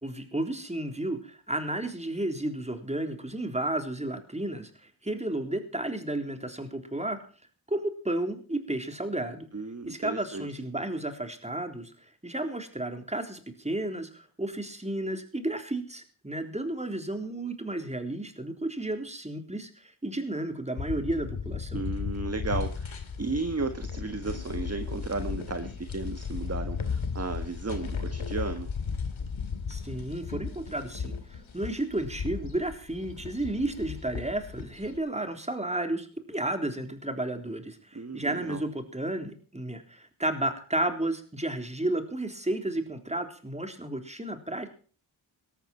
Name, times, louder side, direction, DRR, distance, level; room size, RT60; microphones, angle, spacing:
voice 1, 0.0-7.2 7.7-9.5 9.9-21.8 29.7-44.7, right 1 dB, 15° right, 6 dB, 3.8 m, -32 dB
voice 2, 9.5-10.5 21.7-28.7 37.9-38.6, right 3 dB, 30° right, 8 dB, 1.6 m, -34 dB
sound 1, 20.8-35.0, left 5 dB, 80° left, 2.4 m, -35 dB
18.0 x 14.0 x 4.4 m, 0.41 s
cardioid pair, 45°, 47 cm